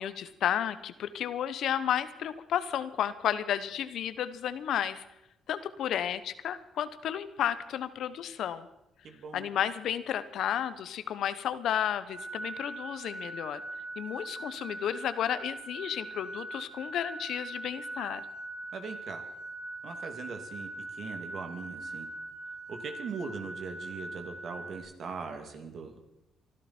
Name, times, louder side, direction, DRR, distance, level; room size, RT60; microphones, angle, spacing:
voice 1, 0.0-5.0 5.5-8.7 9.3-13.6 14.0-18.2, left 10 dB, 75° left, 13 dB, 0.9 m, -32 dB
voice 2, 9.0-9.5 18.7-19.2 19.8-22.1 22.7-26.0, right 5 dB, 60° right, 5 dB, 2.6 m, -40 dB
sound 1, 12.1-24.8, right 2 dB, 90° right, 2.7 m, -42 dB
25.5 x 11.5 x 4.4 m, 0.90 s
cardioid pair, 90°, 0 cm